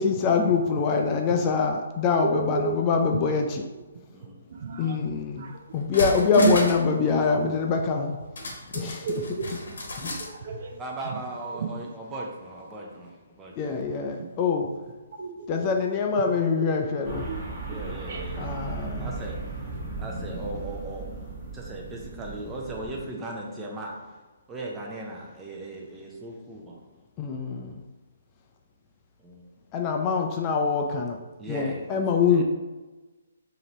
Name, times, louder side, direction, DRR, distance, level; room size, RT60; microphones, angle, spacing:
voice 1, 0.0-3.6 4.8-8.2 8.7-9.2 10.0-10.1 13.6-14.7 15.5-17.3 18.4-19.1 27.2-27.8 29.7-31.2 31.5-32.4, left 5 dB, 25° left, 2 dB, 0.4 m, -24 dB
voice 2, 2.2-2.8 4.6-5.0 5.4-5.6 6.3-6.5 7.3-7.5 8.7-9.5 10.0-10.8 11.0-11.1 11.5-11.7 14.7-14.8 15.2-15.3 16.2-16.3 16.5-16.7 17.2-17.8 18.1-18.2, right 6 dB, 50° right, 3 dB, 0.6 m, -31 dB
voice 3, 4.1-4.4 10.8-13.8 17.7-18.6 19.0-19.4 20.0-21.1 21.5-23.9 24.5-26.8 29.2-29.5 31.4-31.9 32.3-32.4, right 2 dB, 15° right, -1 dB, 0.8 m, -38 dB
sound 1, 5.3-5.4 5.7-6.9 7.2-7.3 8.4-10.3 10.7-10.8, left 2 dB, 70° left, 1.0 m, -33 dB
sound 2, 17.0-23.0, right 3 dB, 30° right, 1.3 m, -36 dB
5.0 x 2.8 x 3.0 m, 1.2 s
figure-of-eight pair, 135°, 0 cm